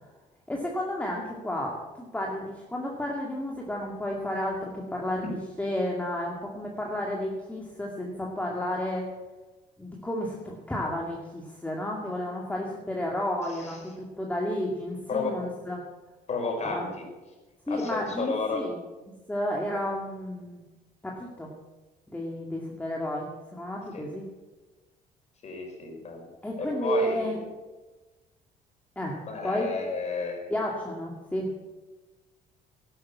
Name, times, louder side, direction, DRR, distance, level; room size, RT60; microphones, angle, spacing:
voice 1, 0.5-1.8 2.1-9.1 9.8-15.8 16.6-16.9 17.7-18.8 19.3-20.6 21.0-21.5 22.1-24.3 26.4-27.4 29.0-29.2 29.4-29.7 30.5-31.5, left 1 dB, 10° left, -1 dB, 2.2 m, -32 dB
voice 2, 13.5-13.8 15.1-15.4 16.3-17.0 17.7-18.6 23.9-24.1 25.4-26.3 26.6-27.3 29.2-30.5, left 4 dB, 40° left, 1 dB, 5.1 m, -32 dB
12.0 x 11.5 x 7.4 m, 1.2 s
cardioid pair, 110°, 17 cm